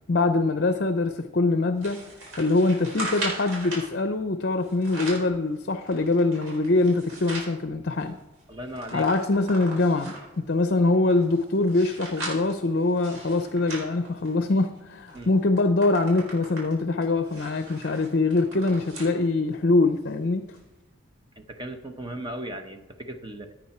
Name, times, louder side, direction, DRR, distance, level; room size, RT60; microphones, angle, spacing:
voice 1, 0.1-2.0 2.4-8.2 8.9-20.5, left 2 dB, 50° left, 9 dB, 0.6 m, -23 dB
sound 1, 1.8-3.9 4.6-5.3 5.8-7.5 8.0-8.1 8.3-10.3 10.9-14.7 15.1-15.2 15.6-19.2 19.6-19.7 20.5-20.6, right 2 dB, 80° right, 4.6 m, -38 dB
voice 2, 8.5-9.1 15.1-15.3 21.4-23.5, right 1 dB, 20° right, 6 dB, 0.9 m, -37 dB
15.5 x 9.0 x 4.4 m, 1.0 s
head